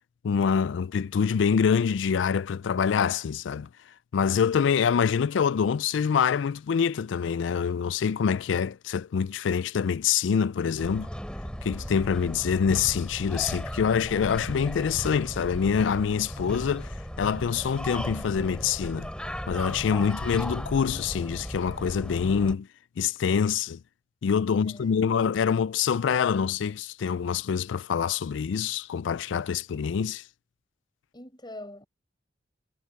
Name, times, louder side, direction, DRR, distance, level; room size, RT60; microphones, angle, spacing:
voice 1, 0.2-3.7 4.1-11.1 11.6-19.1 19.5-22.7 23.0-23.8 24.2-30.2, left 7 dB, 85° left, 0.4 m, -25 dB
sound 1, 10.8-22.5, equal, 5° left, 4.3 m, -36 dB
voice 2, 24.6-25.2 31.1-31.9, left 1 dB, 25° left, 6.9 m, -44 dB
head